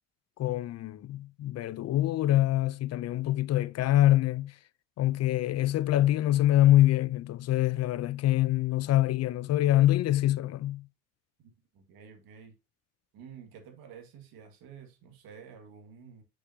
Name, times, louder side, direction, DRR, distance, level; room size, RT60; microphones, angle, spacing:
voice 1, 0.4-4.5 5.0-10.8, left 14 dB, 45° left, 0.4 m, -25 dB
voice 2, 11.4-12.5 13.1-16.2, right 7 dB, 70° right, 1.9 m, -50 dB
6.1 x 6.0 x 2.7 m
supercardioid pair, 75°, 37 cm